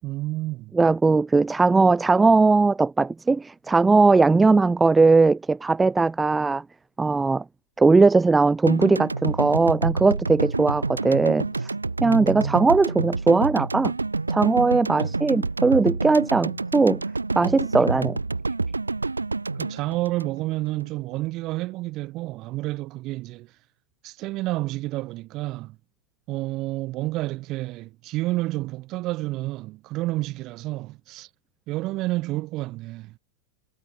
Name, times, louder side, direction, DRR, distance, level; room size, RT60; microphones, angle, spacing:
voice 1, 0.0-0.7 12.0-12.7 15.0-15.1 19.5-23.5 24.0-25.8 26.3-31.3 31.7-33.1, right 18 dB, 40° right, 5.8 m, -30 dB
voice 2, 0.7-6.6 7.0-7.4 7.8-11.7 12.0-13.9 14.3-17.0 17.4-18.2, right 3 dB, 10° right, 0.8 m, -19 dB
sound 1, 8.7-20.9, right 3 dB, 80° right, 1.1 m, -28 dB
figure-of-eight pair, 90°, 0 cm